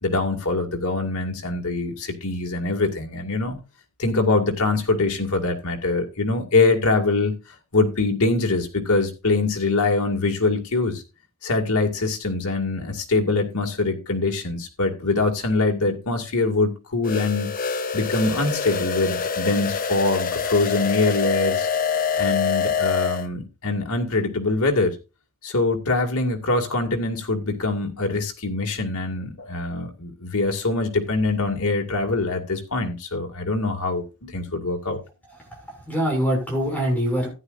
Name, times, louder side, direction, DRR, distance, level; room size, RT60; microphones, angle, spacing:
voice 1, 0.0-3.6 4.0-7.3 7.7-11.0 11.4-17.5 17.9-21.7 22.2-25.0 25.4-35.0, left 3 dB, 90° left, 2.2 m, -23 dB
sound 1, 17.0-23.3, left 6 dB, 40° left, 1.0 m, -25 dB
voice 2, 35.5-37.3, equal, 5° left, 6.2 m, -24 dB
15.0 x 10.0 x 2.5 m
head